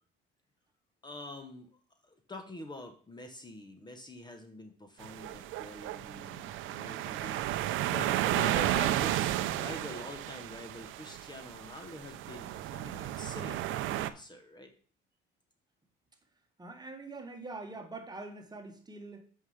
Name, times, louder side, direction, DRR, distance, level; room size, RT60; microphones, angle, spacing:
voice 1, 1.0-1.7 2.0-14.7, left 1 dB, 20° left, 6 dB, 1.3 m, -45 dB
sound 1, 5.0-14.1, right 14 dB, 75° right, 0.6 m, -33 dB
voice 2, 16.6-19.2, right 3 dB, 20° right, 5 dB, 1.6 m, -44 dB
7.4 x 5.7 x 4.9 m, 0.43 s
cardioid pair, 95°, 21 cm